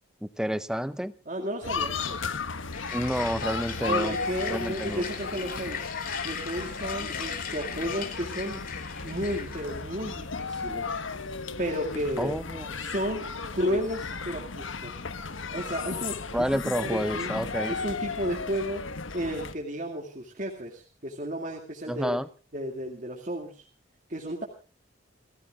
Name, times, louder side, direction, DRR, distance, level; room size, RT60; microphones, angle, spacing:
voice 1, 0.4-1.1 2.9-4.1 4.5-5.1 12.2-12.7 16.3-17.7 21.9-22.3, equal, 5° right, 15 dB, 0.7 m, -29 dB
voice 2, 1.3-2.2 3.8-5.9 6.2-8.6 9.0-11.0 11.6-12.4 12.7-15.0 15.5-17.3 17.7-18.9 19.1-22.2 22.5-23.7 24.1-24.5, equal, 40° right, 0 dB, 2.2 m, -33 dB
sound 1, 1.6-19.5, left 4 dB, 85° left, 1.3 m, -35 dB
sound 2, 2.7-9.9, left 7 dB, 45° left, 3.4 m, -39 dB
29.5 x 15.0 x 2.5 m, 0.34 s
head